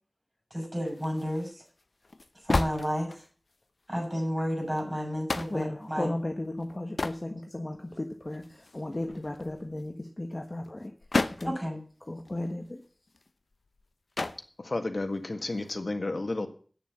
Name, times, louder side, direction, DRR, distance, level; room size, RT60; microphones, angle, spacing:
voice 1, 0.5-1.6 2.4-3.2 3.9-6.1 11.4-11.8, equal, 20° right, 0 dB, 6.9 m, -31 dB
sound 1, 0.8-3.5 4.1-4.2 4.5-4.8 5.3-5.8 6.6-7.2 7.7-7.8 8.2-9.8 10.6-11.6 11.9-12.0 12.2-13.9 14.1-14.5 15.4-15.8, left 3 dB, 85° left, 0.6 m, -34 dB
voice 2, 5.5-10.9 11.4-11.5 12.1-12.8, left 1 dB, 40° left, 3 dB, 1.3 m, -35 dB
voice 3, 14.6-16.5, left 2 dB, 70° left, 7 dB, 1.6 m, -32 dB
9.0 x 6.8 x 8.8 m, 0.43 s
wide cardioid pair, 55°, 0 cm